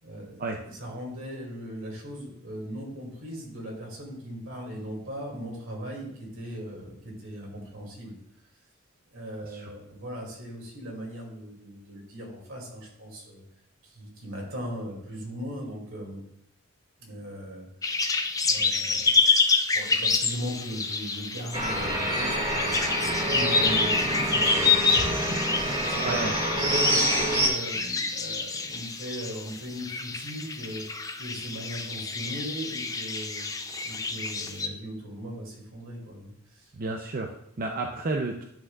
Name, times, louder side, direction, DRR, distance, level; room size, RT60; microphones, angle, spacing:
voice 1, 0.0-8.1 9.1-13.4 13.8-16.2 17.0-19.3 19.7-22.9 23.2-26.2 26.6-30.9 31.2-33.5 33.8-36.7, equal, 75° right, -1 dB, 2.4 m, -38 dB
sound 1, 17.8-34.7, left 4 dB, 15° left, 0.4 m, -28 dB
sound 2, 21.5-27.5, right 1 dB, 25° right, 1.6 m, -27 dB
voice 2, 36.7-38.4, right 3 dB, 45° right, 2 dB, 0.5 m, -31 dB
10.5 x 6.0 x 2.4 m, 0.76 s
head